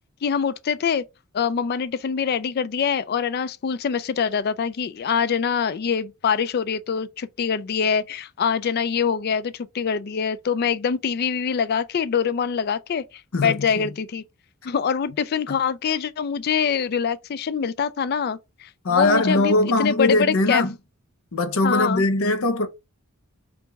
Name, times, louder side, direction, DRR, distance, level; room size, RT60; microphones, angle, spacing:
voice 1, 0.2-1.0 1.3-13.0 13.4-14.2 14.6-20.6 21.6-22.0, left 6 dB, 45° left, 0.3 m, -24 dB
voice 2, 13.3-13.9 15.5-15.6 18.8-20.8 21.3-22.7, left 2 dB, 70° left, 0.7 m, -21 dB
4.5 x 2.5 x 3.4 m
head